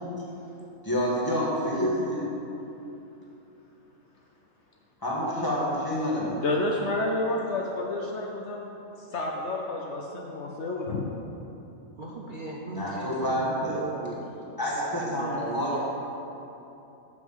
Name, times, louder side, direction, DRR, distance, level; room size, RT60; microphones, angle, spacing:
voice 1, 0.9-2.3 5.0-6.4 12.7-13.8 14.6-15.8, equal, 15° left, -7 dB, 2.0 m, -28 dB
voice 2, 6.4-8.6 9.1-11.1, left 2 dB, 60° left, 0 dB, 1.0 m, -29 dB
voice 3, 12.0-14.2 14.6-15.8, right 2 dB, 45° right, -3 dB, 0.9 m, -38 dB
7.4 x 6.2 x 7.3 m, 2.9 s
omnidirectional pair, 1.4 m